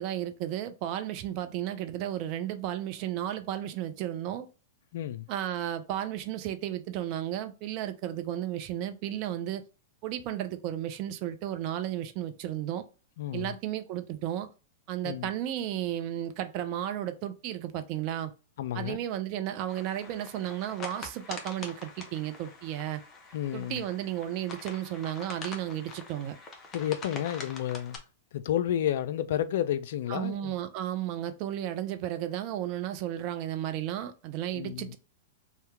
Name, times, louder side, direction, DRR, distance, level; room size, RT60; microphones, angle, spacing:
voice 1, 0.0-4.5 5.3-9.6 10.0-12.8 13.3-14.5 14.9-18.3 18.7-23.0 23.5-26.4 30.1-35.0, right 12 dB, 45° right, 0.4 m, -33 dB
voice 2, 4.9-5.3 13.2-13.5 15.0-15.3 18.6-19.0 23.3-23.8 26.7-28.0 28.3-30.5 34.5-34.9, left 11 dB, 60° left, 0.3 m, -31 dB
sound 1, 19.7-28.0, left 3 dB, 25° left, 0.7 m, -44 dB
2.8 x 2.2 x 3.4 m
hypercardioid pair, 105°, 0 cm